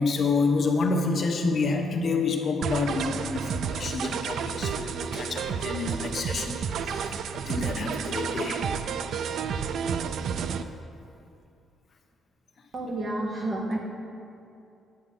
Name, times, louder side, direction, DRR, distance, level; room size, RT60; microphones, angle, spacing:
voice 1, 0.0-8.6, left 4 dB, 50° left, 3 dB, 1.0 m, -28 dB
sound 1, 2.6-10.6, right 7 dB, 70° right, 0.4 m, -31 dB
voice 2, 12.7-13.8, right 1 dB, 40° right, 0 dB, 1.6 m, -30 dB
10.0 x 8.6 x 3.8 m, 2.6 s
cardioid pair, 90°, 0 cm